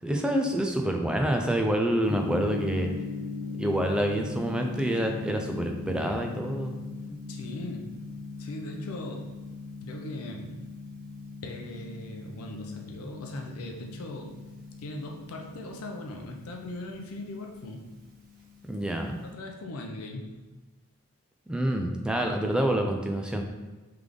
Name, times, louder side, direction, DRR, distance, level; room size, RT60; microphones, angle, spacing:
voice 1, 0.0-2.9 3.6-6.7 18.6-19.2 21.5-23.4, right 1 dB, 5° right, 2 dB, 0.3 m, -27 dB
Gong, 2.1-19.3, left 4 dB, 40° right, 0.7 m, -40 dB
voice 2, 7.3-9.3 9.8-10.7 11.4-14.4 14.8-17.9 19.2-20.5, left 1 dB, 85° left, 2 dB, 0.5 m, -39 dB
3.4 x 3.3 x 3.7 m, 1.2 s
head